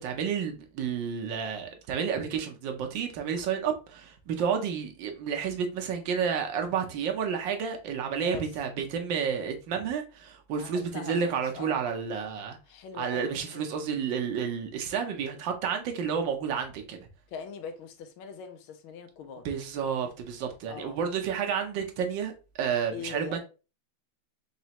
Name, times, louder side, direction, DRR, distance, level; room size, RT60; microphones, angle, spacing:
voice 1, 0.0-12.6 13.0-17.0 19.4-22.3 22.6-23.4, right 7 dB, 70° right, 1.3 m, -30 dB
voice 2, 8.2-8.5 10.6-11.8 12.6-13.7 15.0-15.3 17.3-19.5 20.7-21.0 22.9-23.4, left 6 dB, 80° left, 1.4 m, -42 dB
4.1 x 3.2 x 2.8 m
omnidirectional pair, 2.3 m